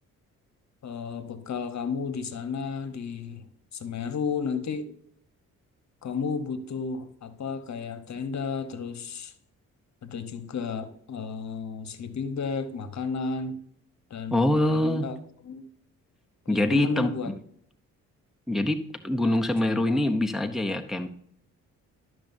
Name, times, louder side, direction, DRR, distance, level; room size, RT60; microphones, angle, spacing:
voice 1, 0.8-3.4 3.7-4.9 6.0-9.3 10.0-13.6 14.1-15.2 15.4-15.6 16.4-17.3 19.2-20.2, left 5 dB, 50° left, 1.1 m, -33 dB
voice 2, 14.3-15.1 16.5-17.1 18.5-18.8 19.0-21.1, left 1 dB, ahead, 0.8 m, -24 dB
12.0 x 6.2 x 2.7 m
supercardioid pair, 60°, 35 cm